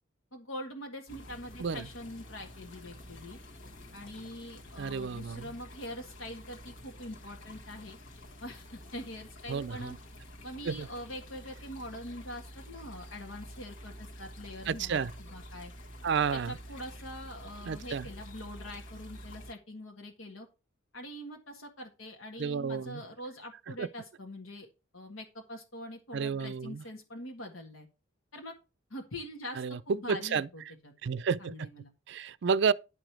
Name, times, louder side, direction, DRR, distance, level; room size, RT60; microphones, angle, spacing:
voice 1, 0.3-3.4 3.9-8.0 8.4-9.9 10.4-15.7 16.3-20.5 20.9-27.9 28.3-28.5 28.9-30.9 31.4-31.9, left 1 dB, 90° left, 1.7 m, -44 dB
sound 1, 1.1-19.5, equal, 70° left, 1.6 m, -48 dB
voice 2, 4.8-5.5 9.5-10.0 10.6-10.9 14.7-15.1 16.0-16.6 17.7-18.1 22.4-23.0 23.8-23.9 26.1-26.8 29.6-30.5 31.0-31.7 32.1-32.7, right 6 dB, 60° right, 0.4 m, -31 dB
11.0 x 5.0 x 5.9 m
head